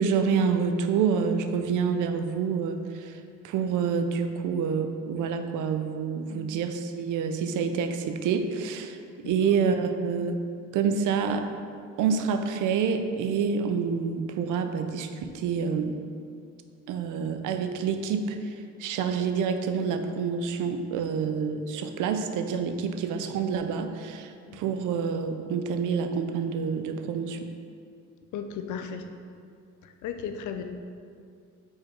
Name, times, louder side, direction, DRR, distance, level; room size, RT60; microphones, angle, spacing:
voice 1, 0.0-9.0 9.2-10.4 10.7-11.5 12.0-16.0 16.9-27.5, right 6 dB, 85° right, 7 dB, 0.5 m, -27 dB
voice 2, 9.2-9.6 24.5-24.6 28.3-29.0 29.8-30.6, left 7 dB, 75° left, 6 dB, 0.6 m, -36 dB
4.7 x 4.6 x 4.6 m, 2.3 s
cardioid pair, 90°, 30 cm